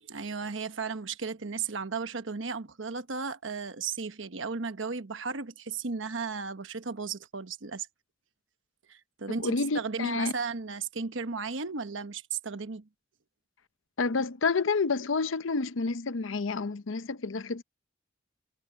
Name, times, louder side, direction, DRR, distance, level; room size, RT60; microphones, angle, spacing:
voice 1, 0.0-7.9 8.9-12.9, right 5 dB, 80° right, 1.1 m, -35 dB
voice 2, 9.4-10.3 14.0-17.6, left 4 dB, 85° left, 0.7 m, -29 dB
head